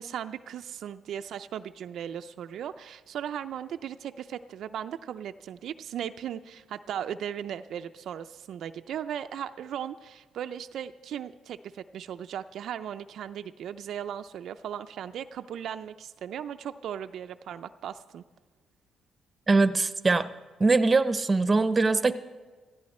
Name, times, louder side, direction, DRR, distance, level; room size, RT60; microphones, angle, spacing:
voice 1, 0.0-18.2, right 9 dB, 70° right, 8 dB, 0.4 m, -37 dB
voice 2, 19.5-20.3 20.6-22.1, right 3 dB, 25° right, 13 dB, 0.7 m, -22 dB
16.5 x 15.0 x 4.3 m, 1.4 s
cardioid pair, 90°, 0 cm